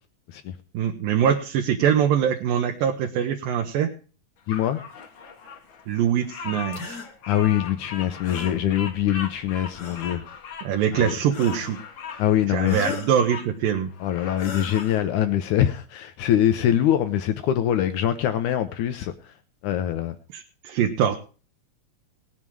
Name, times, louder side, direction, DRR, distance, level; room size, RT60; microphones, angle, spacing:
voice 1, 0.7-3.9 5.9-7.0 10.6-11.8 12.5-13.9 20.3-21.2, right 9 dB, 75° right, 2.6 m, -23 dB
voice 2, 4.5-4.8 7.3-10.2 10.9-11.1 12.2-13.0 14.0-19.3 19.6-20.2, left 11 dB, 80° left, 1.8 m, -23 dB
Bird vocalization bird call bird song, 4.5-13.5 13.9-14.9, left 6 dB, 60° left, 1.2 m, -39 dB
sound 1, 6.7-7.1 8.2-8.6 9.7-10.2 11.3-11.8 12.6-13.2 14.3-15.0, left 4 dB, 45° left, 1.5 m, -36 dB
18.5 x 7.4 x 4.6 m
omnidirectional pair, 4.2 m